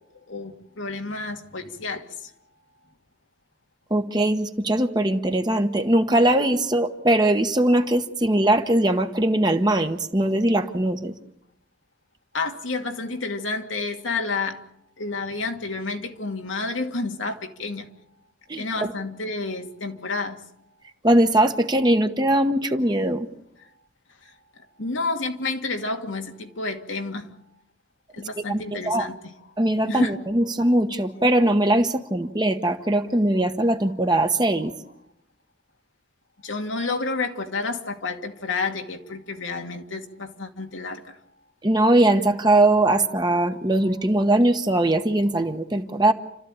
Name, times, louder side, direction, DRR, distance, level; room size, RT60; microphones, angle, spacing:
voice 1, 0.3-2.0 12.3-14.6 15.0-17.9 18.6-20.4 24.8-27.2 28.2-29.2 29.9-30.1 36.4-41.0, left 3 dB, 90° left, 2.3 m, -30 dB
voice 2, 3.9-11.1 18.5-18.9 21.0-23.3 28.5-29.1 29.6-34.7 41.6-46.1, right 1 dB, 20° right, 1.1 m, -21 dB
29.5 x 13.5 x 8.9 m
head